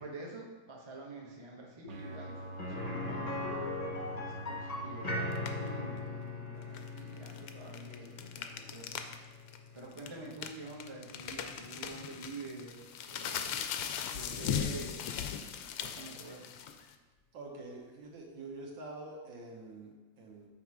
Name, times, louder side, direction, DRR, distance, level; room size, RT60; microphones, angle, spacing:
voice 1, 0.0-3.3 4.0-9.1 9.7-13.6 14.1-15.1 15.8-16.5, right 2 dB, 25° right, -2 dB, 0.7 m, -47 dB
sound 1, 1.9-5.9, right 1 dB, 55° right, 0.8 m, -44 dB
sound 2, 2.6-12.4 12.7-12.8 15.2-15.3, left 2 dB, 45° left, 0.5 m, -41 dB
sound 3, 5.3-5.7 6.6-9.2 9.5-9.6 10.0-16.9, left 8 dB, 80° left, 1.3 m, -38 dB
voice 2, 17.3-20.5, right 2 dB, 75° right, -1 dB, 1.9 m, -46 dB
7.2 x 4.2 x 4.7 m, 1.2 s
omnidirectional pair, 2.1 m